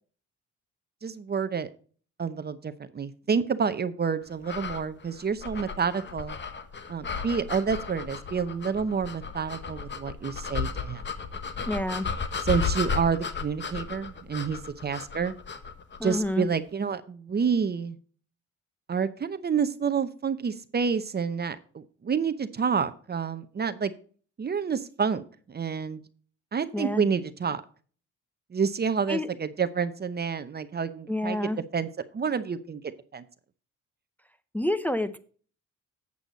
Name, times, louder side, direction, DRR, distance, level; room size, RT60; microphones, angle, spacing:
voice 1, 1.0-1.7 2.2-6.4 6.9-11.0 12.4-15.3 16.0-18.0 18.9-23.9 24.4-26.0 26.5-27.6 28.5-31.9 32.1-33.2, right 6 dB, 35° right, 11 dB, 0.8 m, -29 dB
sound 1, 4.4-16.3, left 5 dB, 35° left, 1.3 m, -34 dB
voice 2, 11.7-12.1 16.0-16.5 26.7-27.0 29.1-29.3 31.1-31.6 34.5-35.2, left 1 dB, 5° left, 8 dB, 0.7 m, -28 dB
8.4 x 7.9 x 4.0 m, 0.42 s
cardioid pair, 90°, 30 cm